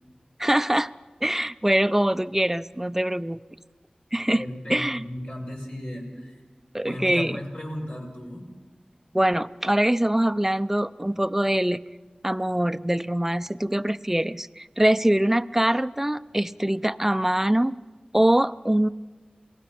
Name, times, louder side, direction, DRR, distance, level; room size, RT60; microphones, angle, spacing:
voice 1, 0.4-0.9 1.2-3.4 4.1-5.0 6.7-7.4 9.1-11.8 12.2-17.8 18.1-18.9, right 1 dB, 10° right, 13 dB, 0.5 m, -23 dB
voice 2, 4.3-6.4 6.8-8.4, equal, 55° left, -1 dB, 6.0 m, -35 dB
28.0 x 19.0 x 5.9 m, 1.4 s
wide cardioid pair, 50°, 3 cm